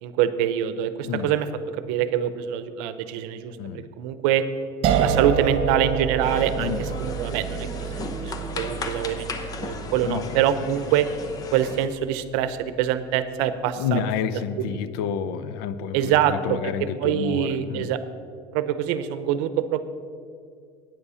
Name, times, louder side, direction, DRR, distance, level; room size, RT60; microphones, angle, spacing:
voice 1, 0.0-4.5 5.0-11.1 11.5-14.8 15.9-16.7 17.0-18.0 18.5-19.9, right 10 dB, 80° right, 12 dB, 0.7 m, -25 dB
voice 2, 1.0-1.3 3.6-3.9 6.6-6.8 10.0-10.8 13.8-17.9, left 8 dB, 85° left, 14 dB, 0.6 m, -30 dB
sound 1, 4.8-11.8, right 7 dB, 50° right, 1.1 m, -28 dB
sound 2, 6.2-11.9, left 3 dB, 30° left, 0.8 m, -35 dB
9.8 x 9.0 x 5.6 m, 2.3 s
cardioid pair, 145°, 12 cm